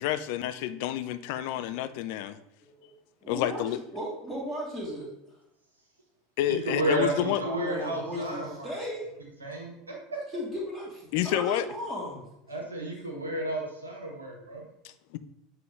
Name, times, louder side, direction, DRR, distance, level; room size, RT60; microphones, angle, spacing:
voice 1, 0.0-2.4 3.3-3.8 6.4-7.4 11.1-11.7 14.8-15.2, left 12 dB, 55° left, 12 dB, 0.4 m, -29 dB
voice 2, 3.2-3.6 3.9-5.1 7.1-7.2 7.6-9.1 9.7-9.9 10.3-12.2, equal, 10° right, -6 dB, 1.6 m, -36 dB
voice 3, 6.4-8.7 9.4-9.7 12.5-14.7, right 1 dB, 80° right, 0 dB, 1.3 m, -32 dB
7.4 x 3.8 x 3.6 m, 0.81 s
figure-of-eight pair, 75°, 0 cm